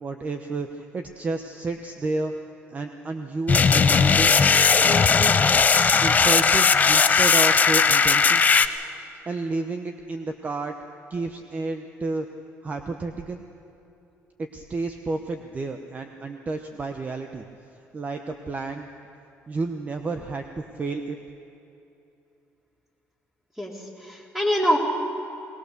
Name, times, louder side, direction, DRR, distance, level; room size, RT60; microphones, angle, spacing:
voice 1, 0.0-2.3 2.7-4.3 4.8-5.3 6.0-8.5 8.9-10.7 11.1-12.3 12.6-13.4 14.4-17.5 17.9-18.9 19.5-21.2, right 3 dB, 30° right, 6 dB, 1.0 m, -31 dB
sound 1, 3.5-8.7, left 5 dB, 30° left, 0.7 m, -18 dB
voice 2, 23.6-24.8, equal, 5° right, -1 dB, 3.8 m, -24 dB
20.5 x 20.0 x 6.8 m, 2.9 s
cardioid pair, 110°, 5 cm